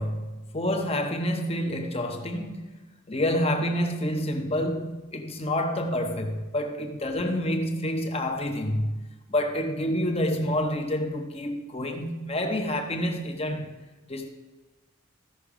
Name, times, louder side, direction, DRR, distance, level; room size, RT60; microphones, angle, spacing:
voice 1, 0.0-13.7 14.1-14.3, left 1 dB, 25° left, 0.9 m, -28 dB
14.5 x 6.0 x 5.0 m
head